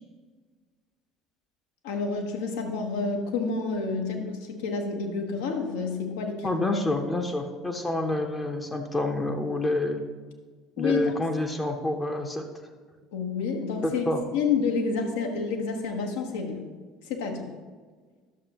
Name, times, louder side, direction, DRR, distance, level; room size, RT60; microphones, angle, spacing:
voice 1, 1.8-6.4 10.8-11.1 13.1-14.0 14.3-16.6 17.1-17.5, left 4 dB, 65° left, 2 dB, 1.1 m, -29 dB
voice 2, 6.4-10.0 10.8-12.4 13.8-14.2, left 2 dB, 15° left, 3 dB, 0.8 m, -28 dB
11.0 x 6.8 x 2.9 m, 1.5 s
figure-of-eight pair, 60°, 0 cm